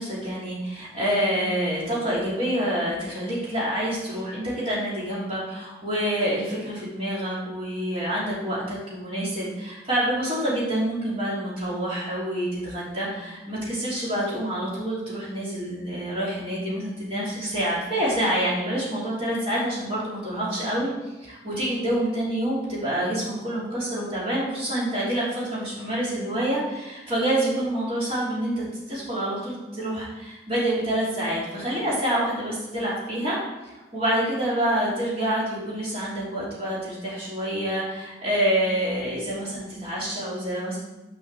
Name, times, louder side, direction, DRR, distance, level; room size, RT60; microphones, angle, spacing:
voice 1, 0.0-20.9 21.2-33.4 33.6-40.8, right 1 dB, 30° right, -8 dB, 3.3 m, -27 dB
6.6 x 5.4 x 6.8 m, 1.1 s
head